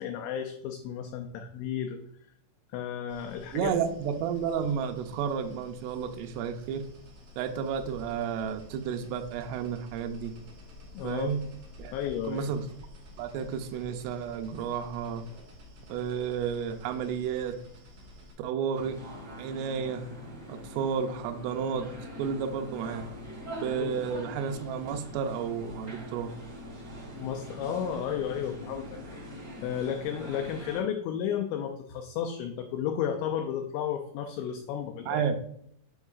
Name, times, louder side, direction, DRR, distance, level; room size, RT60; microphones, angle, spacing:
voice 1, 0.0-2.0 2.7-3.8 10.9-11.4 11.9-12.5 23.8-23.9 27.2-29.3 29.6-35.3, left 9 dB, 85° left, 5 dB, 2.5 m, -33 dB
sound 1, 3.1-18.3, left 1 dB, 45° right, 3.3 m, -50 dB
voice 2, 3.5-6.9 7.4-10.3 11.0-11.4 11.8-11.9 12.3-12.7 13.2-15.2 15.9-17.6 18.4-19.0 19.4-20.0 20.5-21.9 22.2-23.1 23.6-26.3 35.1-35.4, right 7 dB, 85° right, 6 dB, 2.4 m, -32 dB
sound 2, 18.7-30.8, equal, 25° right, 1.6 m, -43 dB
10.5 x 3.8 x 2.4 m, 0.70 s
omnidirectional pair, 5.5 m